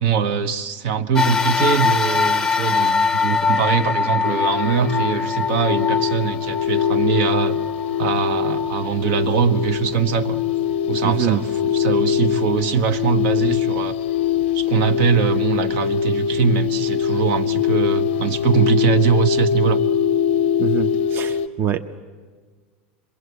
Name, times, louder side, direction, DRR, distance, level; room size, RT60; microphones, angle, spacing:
voice 1, 0.0-7.6 8.0-10.4 10.9-14.0 14.5-19.8, right 7 dB, 65° right, 8 dB, 1.3 m, -22 dB
sound 1, 1.2-9.8 10.4-10.5 11.6-11.7, left 5 dB, 10° left, 0.6 m, -23 dB
sound 2, 4.2-21.5, left 8 dB, 85° left, 0.6 m, -22 dB
voice 2, 11.0-11.4 20.6-21.8, right 8 dB, 35° right, 7 dB, 0.9 m, -23 dB
26.0 x 22.0 x 8.2 m, 1.5 s
supercardioid pair, 125°, 6 cm